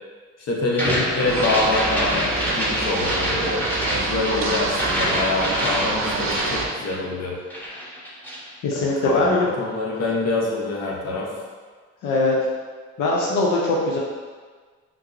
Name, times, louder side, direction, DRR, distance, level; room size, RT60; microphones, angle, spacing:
voice 1, 0.4-7.4 8.7-11.3, left 2 dB, 60° left, -2 dB, 0.8 m, -26 dB
sound 1, 0.7-7.3 7.5-8.5, equal, 5° left, 0.9 m, -26 dB
sound 2, 1.2-6.7, right 3 dB, 45° right, 0.5 m, -27 dB
voice 2, 8.6-9.5 12.0-12.4 13.0-14.0, left 2 dB, 90° left, -3 dB, 0.6 m, -21 dB
5.7 x 2.0 x 2.5 m, 1.4 s
cardioid pair, 90°, 30 cm